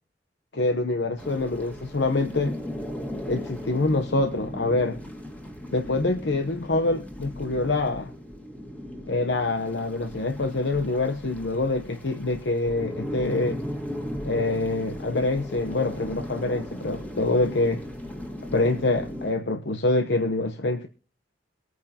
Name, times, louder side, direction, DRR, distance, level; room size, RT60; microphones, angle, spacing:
voice 1, 0.5-2.6 3.3-5.0 5.7-8.1 9.1-13.6 14.3-17.8 18.5-20.9, left 2 dB, 70° left, 0.9 m, -25 dB
sound 1, 1.2-19.3, equal, 10° left, 1.8 m, -37 dB
23.0 x 9.3 x 2.8 m
head